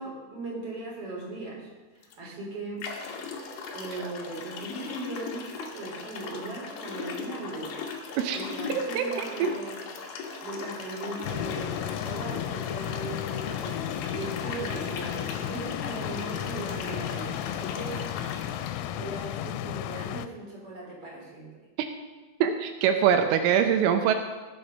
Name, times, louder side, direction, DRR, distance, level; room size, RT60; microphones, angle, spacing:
voice 1, 0.0-2.8 3.7-7.8 8.3-9.8 10.4-11.7 12.0-13.7 14.1-18.0 18.9-21.5, right 2 dB, 35° right, -3 dB, 3.5 m, -38 dB
sound 1, 2.0-2.1 2.8-18.7, left 5 dB, 65° left, 2.4 m, -38 dB
voice 2, 8.7-9.5 22.4-24.2, right 8 dB, 80° right, 6 dB, 3.2 m, -24 dB
sound 2, 11.2-20.3, left 12 dB, 85° left, 3.1 m, -34 dB
19.0 x 7.9 x 5.3 m, 1.3 s
omnidirectional pair, 5.7 m